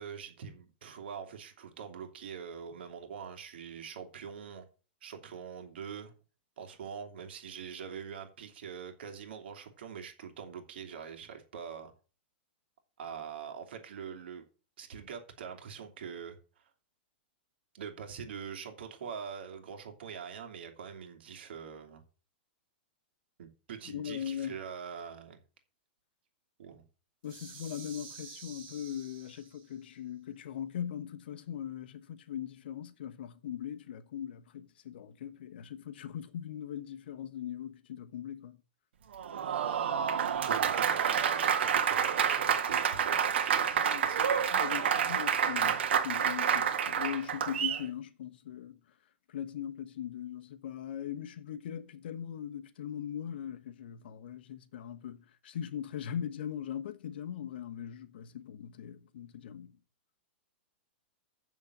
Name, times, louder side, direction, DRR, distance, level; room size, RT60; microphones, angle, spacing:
voice 1, 0.0-4.7 5.0-6.1 6.6-11.9 13.0-14.4 14.8-16.7 17.7-22.0 23.4-25.4 26.6-26.8 40.5-44.4, right 7 dB, 70° right, 2.7 m, -44 dB
voice 2, 23.9-24.6 27.2-38.6 43.8-48.8 49.3-59.8, left 9 dB, 65° left, 1.1 m, -40 dB
sound 1, 27.2-29.8, right 6 dB, 30° right, 3.3 m, -50 dB
Applause, 39.1-47.8, right 8 dB, 85° right, 1.6 m, -28 dB
7.3 x 6.4 x 7.8 m
supercardioid pair, 170°, 6 cm